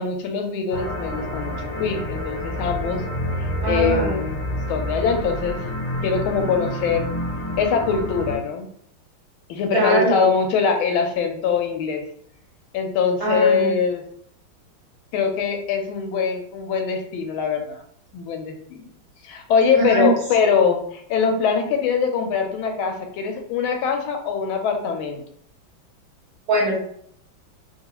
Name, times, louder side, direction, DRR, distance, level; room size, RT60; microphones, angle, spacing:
voice 1, 0.0-3.0 3.7-4.4 4.7-5.6 6.0-7.1 7.6-8.7 9.5-12.0 12.7-14.0 15.1-17.8 18.1-18.8 19.2-25.2, left 6 dB, 85° left, 5 dB, 1.4 m, -23 dB
sound 1, 0.7-8.4, equal, 60° left, 1.0 m, -28 dB
voice 2, 3.6-4.2 9.7-10.3 13.2-13.7 19.8-20.1 26.5-26.8, right 1 dB, 60° right, -4 dB, 1.2 m, -21 dB
3.2 x 2.3 x 2.9 m, 0.64 s
omnidirectional pair, 2.2 m